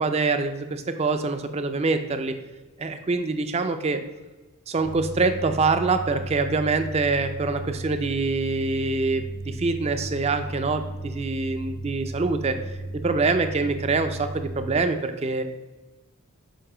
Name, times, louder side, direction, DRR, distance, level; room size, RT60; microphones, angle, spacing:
voice 1, 0.0-2.4 2.8-4.0 4.7-12.6 13.0-15.4, right 3 dB, 30° right, 8 dB, 0.4 m, -25 dB
sound 1, 4.8-14.8, right 1 dB, 80° left, 1.0 m, -35 dB
7.6 x 2.6 x 4.8 m, 1.2 s
head